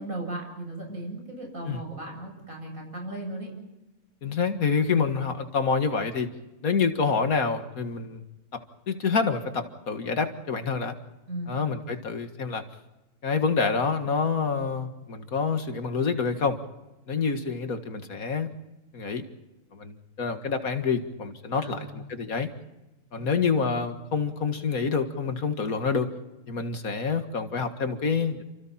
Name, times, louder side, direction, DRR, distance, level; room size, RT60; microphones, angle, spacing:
voice 1, 0.0-3.5 11.3-11.6 21.5-22.0 23.1-23.6, right 2 dB, 65° right, 1 dB, 8.3 m, -37 dB
voice 2, 4.2-6.3 6.6-8.2 8.5-11.0 11.5-12.6 13.2-16.6 17.1-18.5 18.9-19.2 19.7-22.5 23.1-26.1 26.5-28.4, left 5 dB, 75° left, 7 dB, 2.1 m, -27 dB
29.5 x 26.5 x 4.3 m, 1.0 s
omnidirectional pair, 1.5 m